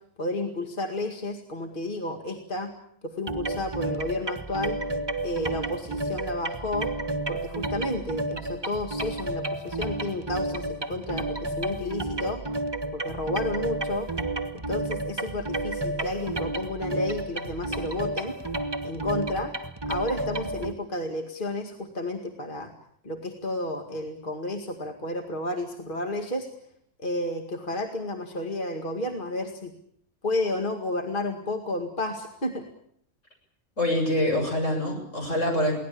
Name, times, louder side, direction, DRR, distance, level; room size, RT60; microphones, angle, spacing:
voice 1, 0.2-2.7 3.0-4.8 5.2-6.9 7.3-12.4 12.9-14.1 14.5-18.4 18.8-19.5 19.9-22.7 23.0-26.5 27.0-29.7 30.2-32.7, left 1 dB, 45° left, 4 dB, 2.3 m, -31 dB
sound 1, 3.3-20.7, right 2 dB, 20° right, 1.4 m, -31 dB
voice 2, 33.8-35.7, left 1 dB, 85° left, 2 dB, 7.6 m, -25 dB
23.5 x 17.5 x 8.6 m, 0.68 s
omnidirectional pair, 1.3 m